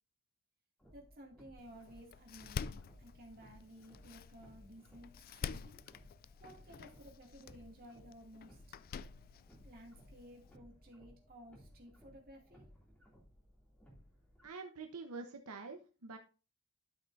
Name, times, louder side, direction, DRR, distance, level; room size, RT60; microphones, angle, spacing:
sound 1, 0.8-14.5, equal, 5° left, 2.6 m, -62 dB
voice 1, 0.9-5.1 5.4-5.8 6.4-8.6 9.6-12.7, equal, 45° right, 0 dB, 2.4 m, -56 dB
Door, 1.6-10.6, left 6 dB, 40° left, 0.3 m, -48 dB
voice 2, 14.4-16.2, right 4 dB, 85° right, 4 dB, 0.9 m, -46 dB
12.0 x 5.9 x 2.6 m, 0.34 s
head